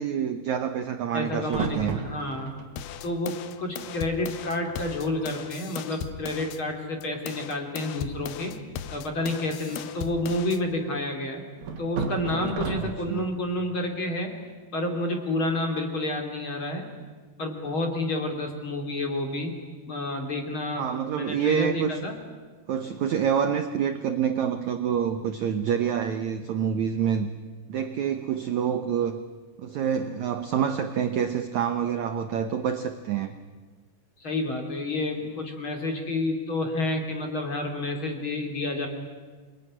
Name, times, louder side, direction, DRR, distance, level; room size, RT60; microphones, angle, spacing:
voice 1, 0.0-2.0 12.8-13.3 20.8-22.0 22.7-27.3 27.7-29.2 29.6-33.3, right 8 dB, 85° right, 8 dB, 1.6 m, -27 dB
voice 2, 1.1-2.5 3.0-8.6 8.9-11.4 11.8-14.3 14.7-16.8 17.4-19.5 19.9-20.9 21.1-22.2 34.2-38.9, left 2 dB, 35° left, 4 dB, 3.1 m, -29 dB
sound 1, 1.5-2.7 3.5-3.6 3.8-4.2 4.5-4.7 5.2-5.3 5.7-6.1 7.1-7.7 9.7-10.6 11.6-13.3, right 6 dB, 60° right, 3.7 m, -34 dB
sound 2, 2.8-6.6 7.0-10.6, left 9 dB, 75° left, 2.9 m, -38 dB
27.5 x 21.5 x 10.0 m, 1.4 s
omnidirectional pair, 4.8 m